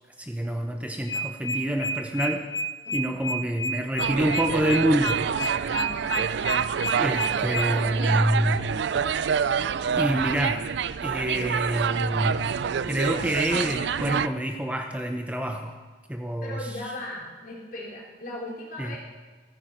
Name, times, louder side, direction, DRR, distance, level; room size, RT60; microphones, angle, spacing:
voice 1, 0.2-2.4 2.9-5.8 6.9-8.7 10.0-10.7 11.0-12.4 12.9-15.8 16.1-16.7 18.8-19.0, right 1 dB, 10° right, 4 dB, 0.7 m, -27 dB
sound 1, 1.1-7.7, equal, 75° left, 1.0 m, -29 dB
voice 2, 2.8-3.2 5.6-6.3 7.7-8.9 16.4-19.0, left 1 dB, 50° left, -4 dB, 3.8 m, -39 dB
sound 2, 4.0-14.3, right 7 dB, 75° right, 0.4 m, -27 dB
14.5 x 14.0 x 4.5 m, 1.4 s
head